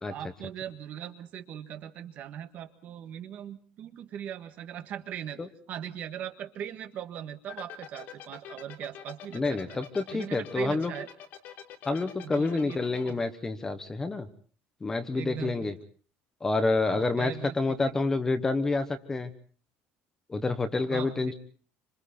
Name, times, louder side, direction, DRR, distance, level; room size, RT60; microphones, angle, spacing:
voice 1, 0.1-9.8 10.1-11.1 12.2-13.3 15.2-15.7 16.9-18.0 20.8-21.3, right 9 dB, 40° right, 9 dB, 1.7 m, -40 dB
sound 1, 7.5-13.1, left 9 dB, 45° left, 3.8 m, -44 dB
voice 2, 9.3-10.9 11.8-14.3 14.8-15.7 16.4-19.3 20.3-21.3, left 3 dB, 10° left, 10 dB, 1.2 m, -28 dB
26.5 x 26.5 x 4.3 m, 0.43 s
cardioid pair, 175°, 4 cm